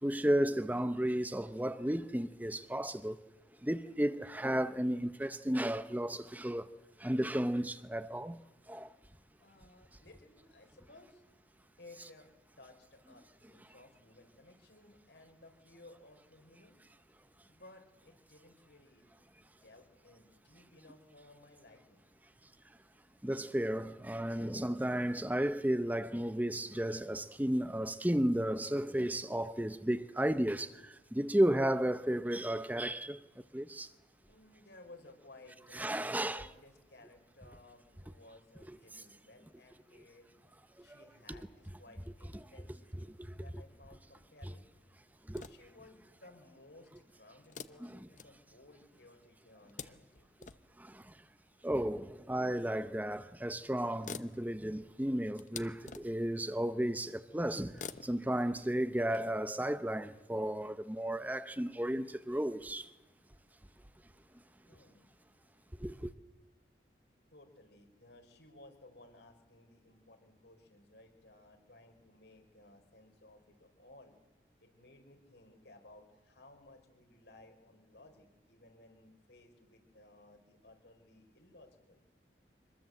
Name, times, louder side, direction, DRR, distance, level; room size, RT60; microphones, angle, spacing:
voice 1, 0.0-3.2 3.6-6.7 7.0-8.4 8.7-8.9 23.2-33.2 33.5-33.9 35.7-36.5 38.7-38.8 40.8-41.0 41.3-41.4 42.3-42.4 43.2-43.4 44.4-44.5 45.2-45.4 47.8-48.1 50.4-50.5 50.8-51.2 51.6-62.9 65.8-66.1, right 1 dB, 10° right, 0.7 m, -33 dB
voice 2, 9.4-11.2 11.8-12.3 12.6-16.8 17.5-19.1 19.4-22.1 34.3-40.3 40.8-44.7 45.3-50.2 64.6-65.1 67.3-74.1 74.6-82.0, left 2 dB, 75° left, 5.0 m, -59 dB
sound 1, 45.2-45.9 47.4-48.8 49.4-50.8 52.0-52.1 53.1-53.2 53.5-53.6 53.8-56.4 57.6-59.2, left 5 dB, 45° left, 0.8 m, -49 dB
25.5 x 21.0 x 7.9 m
head